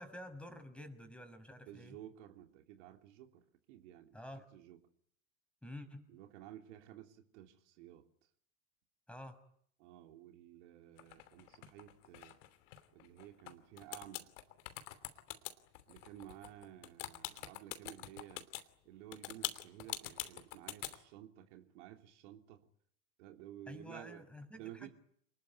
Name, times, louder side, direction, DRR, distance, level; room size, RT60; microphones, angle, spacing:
voice 1, 0.0-2.0 4.1-4.5 5.6-6.0 9.1-9.4 23.7-24.9, left 1 dB, 5° left, 9 dB, 6.0 m, -49 dB
voice 2, 1.7-4.2 4.5-4.8 6.1-8.1 9.8-12.4 12.9-14.3 15.9-18.5 18.8-22.7 23.2-24.2 24.5-24.9, right 12 dB, 60° right, 5 dB, 3.2 m, -53 dB
sound 1, 11.0-13.5 13.8-18.6 19.1-21.0, left 14 dB, 65° left, 3.0 m, -44 dB
29.0 x 20.5 x 9.7 m, 0.64 s
figure-of-eight pair, 80°, 39 cm